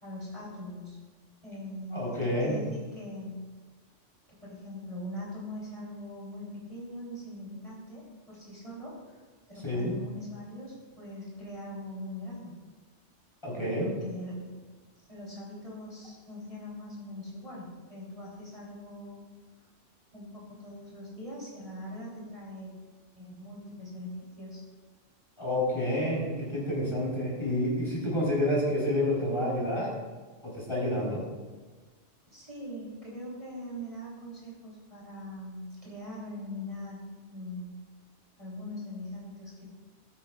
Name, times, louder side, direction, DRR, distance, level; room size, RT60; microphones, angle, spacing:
voice 1, 0.0-1.0 1.4-3.5 4.3-12.6 13.5-14.5 15.1-19.2 20.1-22.7 23.1-24.6 32.3-37.8 38.4-39.7, left 1 dB, 25° right, -7 dB, 3.4 m, -42 dB
voice 2, 1.9-2.6 9.6-9.9 13.4-13.9 25.4-29.9 30.4-31.2, left 1 dB, 25° left, -7 dB, 4.1 m, -29 dB
19.5 x 8.7 x 2.4 m, 1.3 s
omnidirectional pair, 1.3 m